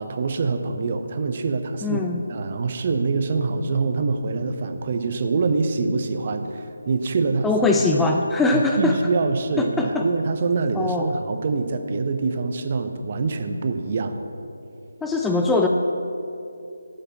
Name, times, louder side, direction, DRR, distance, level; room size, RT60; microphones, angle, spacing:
voice 1, 0.0-2.0 2.3-7.5 8.0-8.1 8.5-14.2, right 4 dB, 35° right, 7 dB, 0.6 m, -25 dB
voice 2, 1.8-2.2 7.4-9.0 9.6-10.1 10.7-11.1 15.0-15.7, left 3 dB, 5° left, 1 dB, 0.3 m, -21 dB
8.2 x 5.4 x 7.4 m, 2.6 s
figure-of-eight pair, 155°, 0 cm